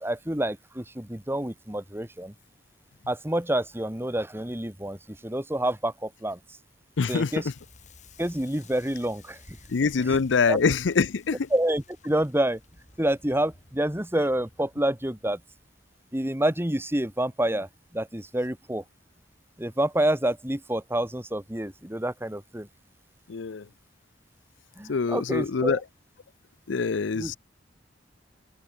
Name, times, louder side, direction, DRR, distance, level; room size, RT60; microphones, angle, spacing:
voice 1, 0.0-2.3 3.1-6.6 7.1-7.5 8.2-9.6 10.0-10.2 10.5-10.6 11.5-12.6 13.0-15.4 16.1-18.8 19.6-22.7 24.8-25.8 27.1-27.4, right 1 dB, 15° right, 2.0 m, -28 dB
voice 2, 7.0-7.3 9.7-11.5 23.3-23.7 24.9-25.8 26.7-27.4, left 5 dB, 85° left, 0.6 m, -24 dB
Crackle, 7.2-16.2, left 3 dB, 40° left, 5.6 m, -55 dB
head